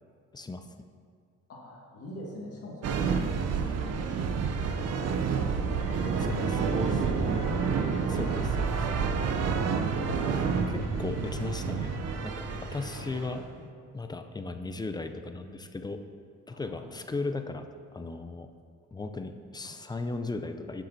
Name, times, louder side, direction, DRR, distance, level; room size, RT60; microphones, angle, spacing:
voice 1, 0.3-0.7 6.2-7.0 8.1-8.7 10.3-11.9 12.2-13.4 13.9-16.0 16.5-17.7 17.9-18.5 18.9-20.8, left 3 dB, 15° left, 7 dB, 0.3 m, -37 dB
voice 2, 1.5-3.5 3.9-4.3 4.6-6.3 6.6-10.4 12.5-13.2 13.5-13.7 16.5-17.0 19.6-19.7, left 1 dB, 50° left, -3 dB, 1.6 m, -45 dB
sound 1, 2.8-13.5, right 6 dB, 55° right, 0.5 m, -29 dB
sound 2, 5.8-13.1, right 1 dB, 80° left, 1.0 m, -38 dB
7.1 x 7.0 x 2.6 m, 2.1 s
cardioid pair, 90°, 30 cm